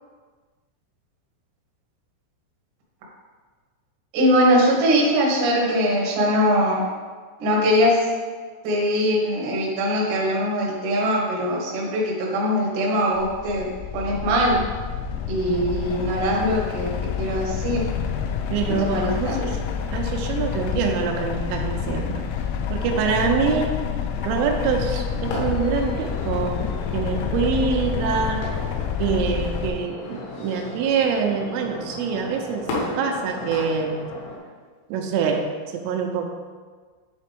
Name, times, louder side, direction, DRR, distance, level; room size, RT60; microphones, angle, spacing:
voice 1, 4.1-6.8 7.4-8.1 8.6-13.7 13.9-14.6 15.3-16.9 17.2-17.8 18.7-19.4, equal, 70° right, -3 dB, 2.0 m, -21 dB
sound 1, 13.2-29.7, left 8 dB, 85° left, 3.1 m, -28 dB
voice 2, 18.5-19.6 19.9-22.2 22.7-23.8 24.2-26.6 26.9-28.4 29.0-34.0 34.9-35.4 35.7-36.3, right 6 dB, 85° right, 3 dB, 3.2 m, -25 dB
sound 2, 25.1-34.4, left 2 dB, 70° left, 3.0 m, -35 dB
9.6 x 4.2 x 3.4 m, 1.5 s
omnidirectional pair, 5.7 m